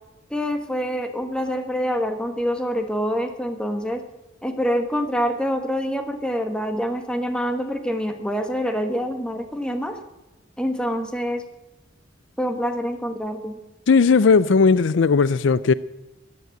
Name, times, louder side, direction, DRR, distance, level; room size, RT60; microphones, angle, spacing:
voice 1, 0.3-4.1 4.4-10.0 10.6-11.4 12.4-13.6, equal, 5° left, 5 dB, 1.5 m, -26 dB
voice 2, 13.9-15.7, left 5 dB, 70° left, 17 dB, 0.4 m, -16 dB
14.5 x 11.0 x 7.7 m, 1.0 s
head